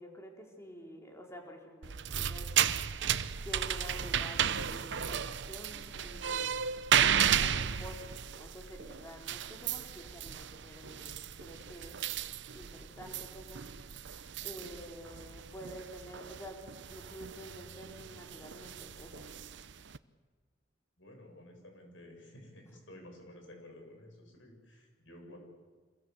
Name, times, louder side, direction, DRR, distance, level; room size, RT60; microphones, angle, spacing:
voice 1, 0.0-2.5 3.4-6.5 6.9-12.0 12.5-13.7 14.4-16.6 16.9-19.3, equal, 15° left, 1 dB, 4.0 m, -49 dB
sound 1, 1.8-20.0, right 8 dB, 70° right, 0.8 m, -34 dB
voice 2, 21.0-25.4, left 1 dB, 80° left, 2 dB, 7.9 m, -53 dB
26.5 x 21.5 x 8.1 m, 1.4 s
head